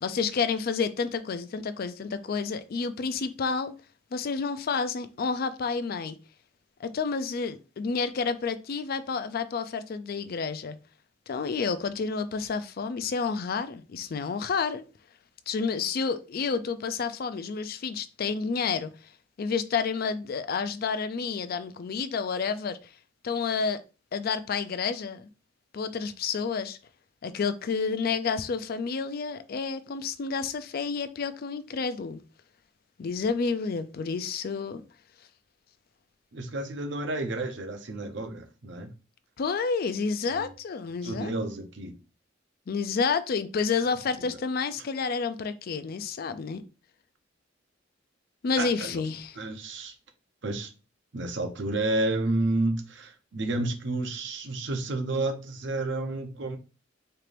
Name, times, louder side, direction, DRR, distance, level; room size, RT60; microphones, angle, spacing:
voice 1, 0.0-3.7 4.1-6.2 6.8-10.8 11.3-14.8 15.5-18.9 19.4-22.8 23.2-23.8 24.1-25.3 25.7-26.8 27.2-32.2 33.0-34.8 39.4-41.3 42.7-46.6 48.4-49.4, left 5 dB, 50° left, 0.4 m, -30 dB
voice 2, 36.3-38.9 40.3-40.5 41.0-42.0 44.2-44.4 48.6-49.0 49.4-49.9 50.4-50.7 51.1-56.6, right 2 dB, 65° right, 0.8 m, -31 dB
4.4 x 2.5 x 3.3 m
head